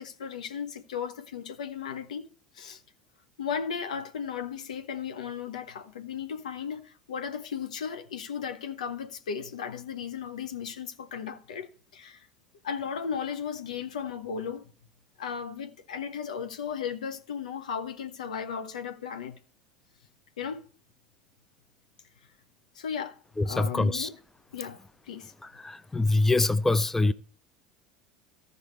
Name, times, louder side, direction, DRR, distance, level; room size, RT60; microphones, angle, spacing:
voice 1, 0.0-2.3 2.5-2.8 3.4-12.3 12.6-14.7 15.2-19.4 20.4-20.6 22.7-23.2 23.4-24.2 24.5-24.8 25.1-25.3, left 7 dB, 75° left, 0.8 m, -35 dB
voice 2, 23.4-24.1 25.4-27.1, left 2 dB, 10° left, 0.4 m, -25 dB
15.0 x 5.3 x 3.2 m
figure-of-eight pair, 70°, 4 cm